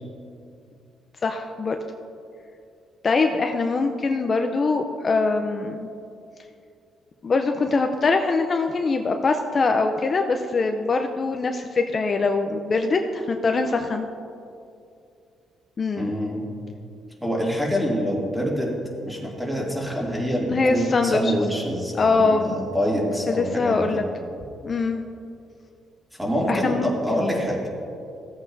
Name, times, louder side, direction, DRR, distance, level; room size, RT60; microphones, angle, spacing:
voice 1, 1.2-1.8 3.0-5.9 7.2-14.1 15.8-16.2 20.5-21.3 21.9-22.5 23.3-24.0 24.6-25.0 26.5-27.2, left 3 dB, 40° left, 5 dB, 0.5 m, -23 dB
voice 2, 16.0-16.5 17.2-18.7 19.0-24.0 26.2-27.7, equal, 5° right, -4 dB, 2.5 m, -26 dB
15.5 x 8.2 x 2.7 m, 2.5 s
cardioid pair, 90°, 0 cm